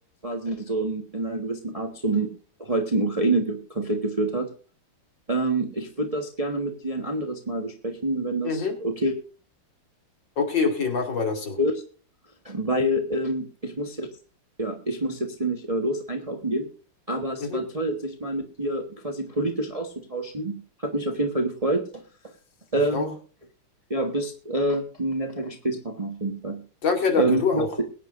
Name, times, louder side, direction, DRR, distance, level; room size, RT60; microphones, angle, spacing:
voice 1, 0.2-2.3 2.6-4.5 5.3-9.1 11.6-11.7 12.4-14.1 14.6-16.7 17.1-22.0 22.7-23.1 23.9-26.6 27.2-27.8, right 2 dB, 20° right, 4 dB, 1.1 m, -27 dB
voice 2, 8.4-8.7 10.4-11.6 17.4-17.6 22.9-23.1 26.8-27.7, left 5 dB, 55° left, 3 dB, 3.2 m, -25 dB
22.0 x 9.7 x 2.6 m, 0.38 s
omnidirectional pair, 2.4 m